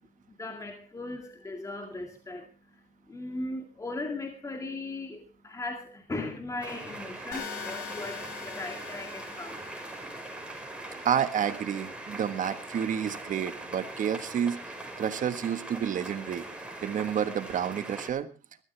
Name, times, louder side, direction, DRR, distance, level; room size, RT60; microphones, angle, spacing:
voice 1, 0.4-9.7, left 2 dB, 20° left, 4 dB, 2.2 m, -38 dB
sound 1, 6.6-18.1, right 2 dB, 5° right, 5.2 m, -41 dB
sound 2, 7.3-11.3, left 7 dB, 85° left, 4.0 m, -43 dB
voice 2, 10.9-14.6 15.0-16.4 16.8-18.3, right 8 dB, 50° right, 10 dB, 1.6 m, -30 dB
20.5 x 13.5 x 3.4 m, 0.32 s
cardioid pair, 110°, 17 cm